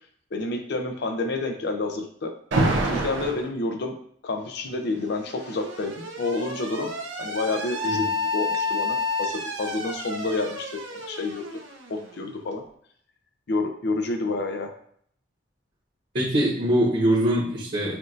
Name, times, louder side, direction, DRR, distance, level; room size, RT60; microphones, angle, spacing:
voice 1, 0.3-2.3 2.8-3.9 4.2-6.9 7.2-11.4 11.9-12.6 13.5-14.7, left 2 dB, 65° left, 5 dB, 0.5 m, -29 dB
Alarm, 2.5-3.5 4.7-12.4, left 1 dB, 85° right, 0.7 m, -29 dB
voice 2, 16.1-18.0, right 1 dB, 45° right, -8 dB, 1.1 m, -23 dB
5.8 x 2.5 x 2.5 m, 0.63 s
head